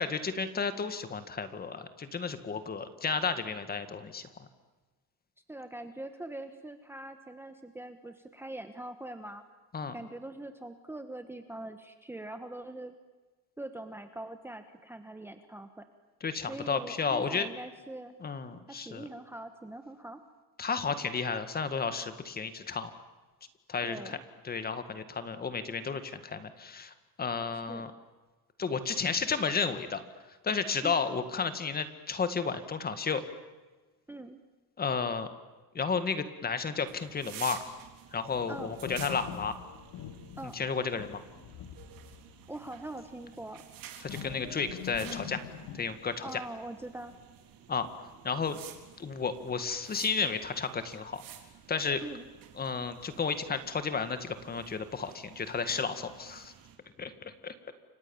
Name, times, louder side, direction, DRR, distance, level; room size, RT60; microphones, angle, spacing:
voice 1, 0.0-4.2 9.7-10.0 16.2-17.5 18.2-19.0 20.6-22.9 23.7-24.2 24.4-27.9 28.6-30.0 30.4-33.2 34.8-35.3 35.7-37.6 38.1-39.6 40.4-41.2 44.0-45.4 45.7-46.4 47.7-47.9 48.2-48.6 49.0-51.2 51.7-52.0 52.6-56.5 57.0-57.7, left 5 dB, 25° left, 10 dB, 2.0 m, -32 dB
voice 2, 5.5-9.4 9.9-12.9 13.6-15.9 16.5-18.2 18.7-20.2 23.8-24.1 27.7-27.9 30.8-31.0 34.1-34.4 38.5-38.7 40.4-40.6 42.5-43.6 46.2-47.1 52.0-52.3, right 1 dB, 5° right, 8 dB, 1.2 m, -43 dB
sound 1, 36.8-56.8, right 10 dB, 60° right, 3.9 m, -51 dB
sound 2, 38.2-42.6 42.8-43.0 44.1-45.8, left 9 dB, 75° left, 2.9 m, -44 dB
30.0 x 25.5 x 7.2 m, 1.2 s
cardioid pair, 170°, 37 cm